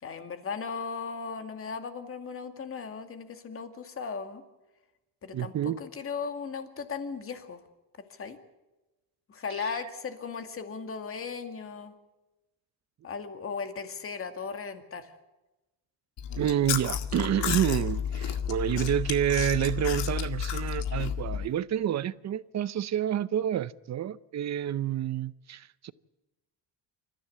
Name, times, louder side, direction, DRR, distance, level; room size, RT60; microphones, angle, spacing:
voice 1, 0.0-4.4 5.2-7.6 8.1-8.4 9.3-11.9 13.0-15.1, left 5 dB, 30° left, 2.2 m, -37 dB
voice 2, 5.3-5.8 9.6-9.8 16.4-25.9, right 11 dB, 40° right, 0.7 m, -29 dB
Chewing mastication, 16.2-21.5, left 8 dB, 75° left, 2.0 m, -31 dB
28.5 x 14.5 x 8.3 m
cardioid pair, 160°, 43 cm